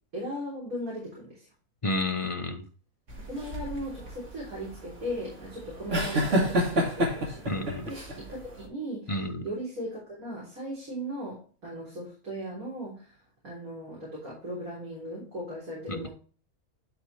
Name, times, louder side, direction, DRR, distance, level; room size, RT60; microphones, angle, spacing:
voice 1, 0.1-1.5 3.3-9.2 9.4-13.1 13.4-16.1, equal, 80° right, -6 dB, 4.1 m, -38 dB
voice 2, 1.8-2.7 7.5-7.9 9.1-9.4 15.9-16.1, left 2 dB, 35° left, 6 dB, 0.5 m, -30 dB
sound 1, 3.1-8.6, equal, 55° right, 2.4 m, -29 dB
11.5 x 4.7 x 3.2 m, 0.38 s
omnidirectional pair, 1.5 m